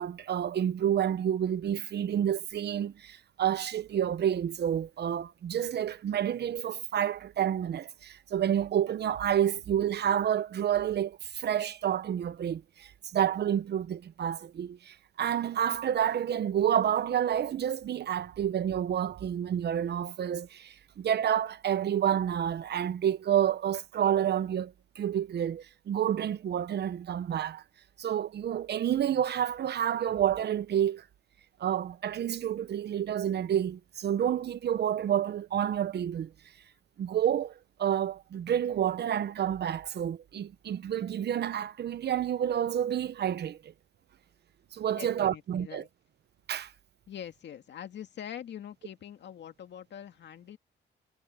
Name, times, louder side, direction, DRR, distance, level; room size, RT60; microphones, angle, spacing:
voice 1, 0.0-27.6 28.0-31.0 31.6-36.3 37.0-37.5 37.8-43.7 44.7-45.8 46.5-46.7, right 10 dB, 55° right, 1.0 m, -29 dB
voice 2, 45.0-45.9 47.1-50.6, left 9 dB, 65° left, 2.2 m, -44 dB
cardioid pair, 90°, 20 cm